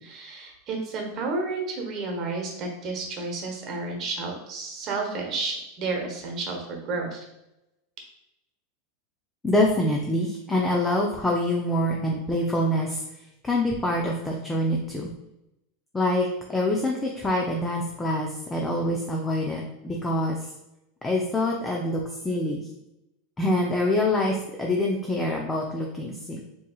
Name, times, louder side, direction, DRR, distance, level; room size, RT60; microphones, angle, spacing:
voice 1, 0.0-7.2, right 3 dB, 45° right, 1 dB, 1.1 m, -31 dB
voice 2, 9.4-13.0 13.4-15.1 15.9-20.5 21.0-22.7 23.4-26.4, left 1 dB, 15° left, -1 dB, 0.5 m, -25 dB
4.5 x 3.0 x 2.3 m, 0.88 s
hypercardioid pair, 105°, 0 cm